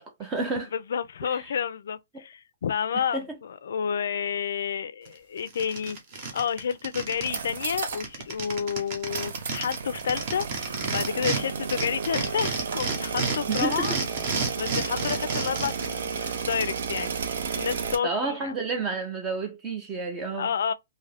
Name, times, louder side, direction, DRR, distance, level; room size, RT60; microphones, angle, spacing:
voice 1, 0.0-0.7 1.3-1.4 2.1-2.2 3.1-3.3 13.5-14.0 18.0-20.5, right 3 dB, 15° right, 0.4 m, -30 dB
voice 2, 0.7-6.0 6.3-14.0 14.6-17.1 17.6-18.6 20.4-20.7, left 7 dB, 65° left, 0.4 m, -30 dB
sound 1, 5.1-5.2 5.5-7.4 7.6-7.7 7.9-11.4 11.7-15.9, right 4 dB, 30° right, 0.8 m, -30 dB
sound 2, 7.2-8.1 8.4-8.5 9.1-18.0, right 6 dB, 60° right, 0.6 m, -33 dB
2.6 x 2.4 x 3.3 m
hypercardioid pair, 175°, 0 cm